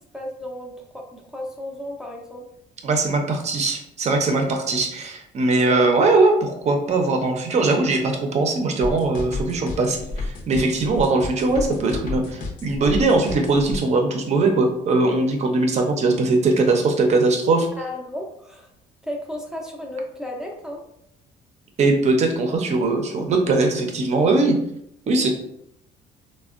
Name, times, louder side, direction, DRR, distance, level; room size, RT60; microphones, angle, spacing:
voice 1, 0.1-2.5 17.8-18.7 19.0-20.8, left 1 dB, 5° right, -1 dB, 0.5 m, -34 dB
voice 2, 2.8-17.7 21.8-24.6 25.1-25.3, right 3 dB, 40° right, 4 dB, 0.6 m, -20 dB
sound 1, 8.8-13.9, left 3 dB, 55° left, 0.7 m, -31 dB
3.3 x 2.2 x 2.4 m, 0.76 s
cardioid pair, 110°, 17 cm